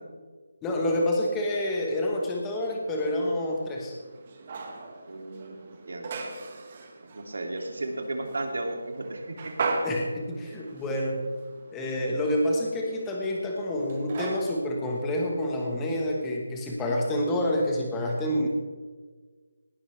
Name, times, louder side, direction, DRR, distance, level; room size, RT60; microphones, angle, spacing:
voice 1, 0.6-4.0 9.8-11.3 11.7-18.5, left 1 dB, 5° left, 0 dB, 1.3 m, -28 dB
sound 1, 2.5-16.3, right 3 dB, 25° right, 1.3 m, -39 dB
voice 2, 5.1-5.6 5.9-6.1 7.1-9.5, right 2 dB, 70° right, 3 dB, 2.5 m, -34 dB
18.5 x 11.5 x 3.3 m, 1.4 s
figure-of-eight pair, 175°, 0 cm